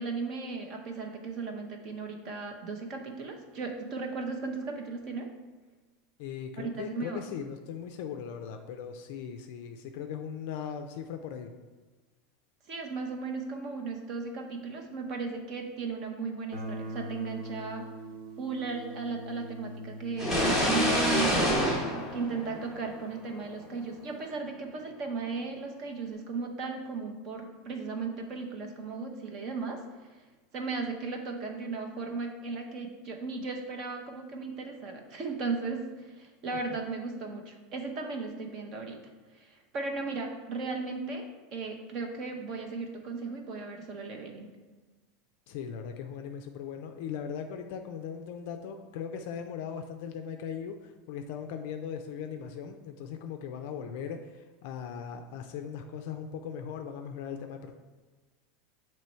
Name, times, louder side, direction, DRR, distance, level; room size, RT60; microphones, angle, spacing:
voice 1, 0.0-5.3 6.6-7.3 12.7-17.9 18.4-21.6 22.1-29.8 30.5-39.0 39.4-44.5, right 4 dB, 30° right, 3 dB, 0.7 m, -36 dB
voice 2, 6.2-11.5 45.5-57.7, left 7 dB, 50° left, 5 dB, 0.4 m, -39 dB
Guitar, 16.5-23.2, right 1 dB, 60° right, 1.1 m, -43 dB
sound 1, 20.2-23.0, equal, 10° right, 1.1 m, -26 dB
7.4 x 3.1 x 4.3 m, 1.3 s
supercardioid pair, 175°, 0 cm